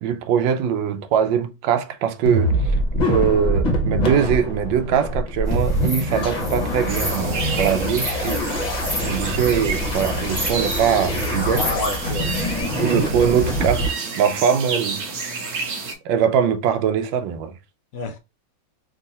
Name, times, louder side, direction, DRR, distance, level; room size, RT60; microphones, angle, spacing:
voice 1, 0.0-2.6 2.9-8.6 9.0-11.7 12.8-13.9 14.2-15.0 16.0-17.5, right 8 dB, 80° right, 1.3 m, -22 dB
sound 1, 2.3-13.9, equal, 40° left, 0.6 m, -24 dB
sound 2, 5.5-12.6, left 1 dB, 5° right, 0.6 m, -30 dB
sound 3, 6.9-15.9, right 4 dB, 60° right, 1.4 m, -31 dB
voice 2, 11.5-12.8 17.9-18.2, left 3 dB, 75° left, 0.8 m, -30 dB
3.7 x 2.7 x 4.0 m
omnidirectional pair, 2.1 m